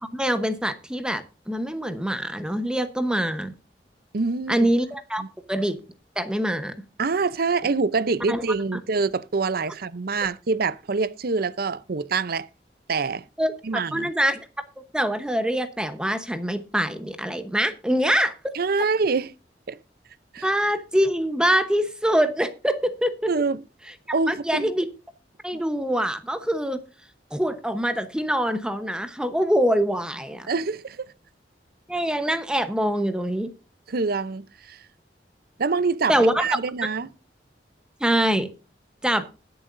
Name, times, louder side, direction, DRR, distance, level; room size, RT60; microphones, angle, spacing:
voice 1, 0.0-3.5 4.5-5.2 5.5-5.8 6.2-6.7 8.3-8.4 13.4-14.6 14.9-18.3 20.4-23.3 24.3-24.9 25.4-26.8 27.3-30.5 31.9-33.5 36.1-36.5 38.0-38.5 39.0-39.2, equal, 5° right, 0.9 m, -24 dB
voice 2, 4.1-4.7 5.2-5.3 7.0-12.5 12.9-13.2 13.6-14.1 18.5-19.3 19.7-19.8 20.3-20.5 23.3-23.6 24.1-24.7 30.5-31.0 33.9-34.9 35.6-37.1, right 4 dB, 60° right, 0.6 m, -25 dB
21.0 x 7.0 x 2.6 m
head